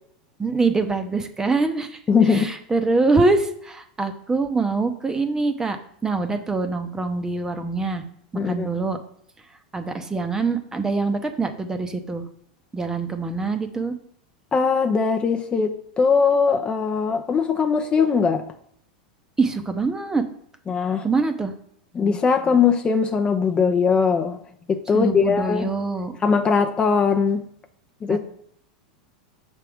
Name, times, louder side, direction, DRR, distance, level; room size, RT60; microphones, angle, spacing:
voice 1, 0.4-2.0 2.3-5.8 6.0-8.0 8.3-9.0 9.7-12.2 12.7-13.9 19.4-20.2 21.0-21.5 24.9-26.2 28.1-28.2, right 3 dB, 15° right, 0.8 m, -24 dB
voice 2, 2.1-2.5 8.4-8.7 14.5-18.5 20.7-21.0 21.9-24.4 24.7-25.7 26.2-27.5 28.0-28.2, left 5 dB, 25° left, 0.6 m, -20 dB
6.7 x 3.6 x 6.1 m
hypercardioid pair, 105°, 4 cm